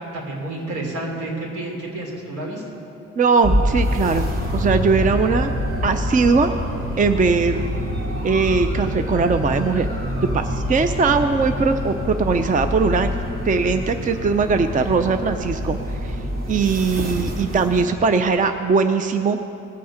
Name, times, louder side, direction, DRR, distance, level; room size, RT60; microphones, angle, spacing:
voice 1, 0.1-2.6, right 2 dB, 75° right, -2 dB, 3.4 m, -30 dB
voice 2, 3.2-5.5 5.8-6.5 7.0-7.7 8.2-9.9 10.3-13.1 13.4-15.8 16.0-16.2 16.5-19.4, right 4 dB, 25° right, 8 dB, 0.5 m, -20 dB
sound 1, 3.4-17.8, equal, 45° right, 2.3 m, -26 dB
19.5 x 6.8 x 5.1 m, 2.7 s
cardioid pair, 90°, 30 cm